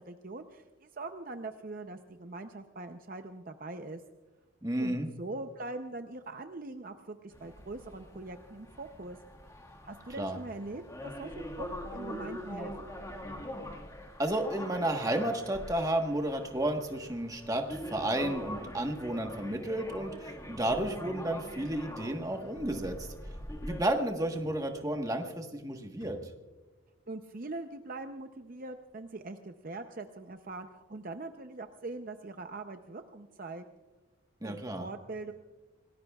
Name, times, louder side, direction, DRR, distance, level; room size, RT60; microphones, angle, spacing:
voice 1, 0.0-4.0 4.8-9.2 9.8-12.7 27.1-33.6 34.4-35.3, right 2 dB, 45° right, 6 dB, 0.6 m, -42 dB
voice 2, 4.6-5.1 10.2-10.4 14.2-23.1 23.6-26.2 34.4-34.9, right 1 dB, 15° right, 4 dB, 1.3 m, -32 dB
sound 1, 7.3-23.8, equal, 15° left, 1.8 m, -43 dB
sound 2, 18.0-18.3 20.7-20.9 21.4-21.5 22.4-23.1 23.4-23.7 24.2-25.1 25.4-26.4 27.9-29.0 29.5-29.6 30.3-30.7, left 1 dB, 75° left, 6.1 m, -53 dB
27.5 x 19.0 x 2.4 m, 1.2 s
head